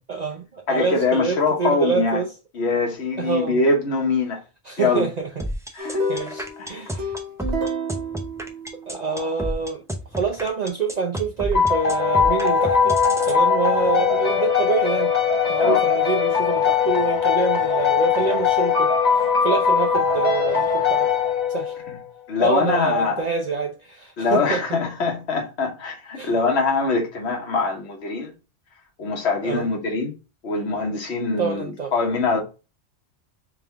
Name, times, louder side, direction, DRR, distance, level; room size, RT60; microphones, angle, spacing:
voice 1, 0.1-2.3 3.2-3.6 4.6-5.3 6.1-7.2 8.9-9.8 10.1-13.0 13.2-15.1 15.5-21.1 21.5-21.7 22.4-24.6 26.2-26.4 29.4-29.7 31.4-31.9, right 5 dB, 45° right, 0.7 m, -26 dB
voice 2, 0.7-2.2 2.5-4.4 4.8-5.0 5.7-6.0 6.6-6.8 15.6-15.8 22.3-23.2 24.2-28.3 29.0-30.1 30.4-32.4, left 3 dB, 70° left, 1.4 m, -23 dB
sound 1, 5.4-13.4, equal, 5° right, 0.5 m, -30 dB
sound 2, 5.8-9.2, equal, 70° right, 1.2 m, -30 dB
sound 3, 11.5-21.9, left 6 dB, 40° left, 1.0 m, -20 dB
3.6 x 3.5 x 3.4 m
omnidirectional pair, 1.1 m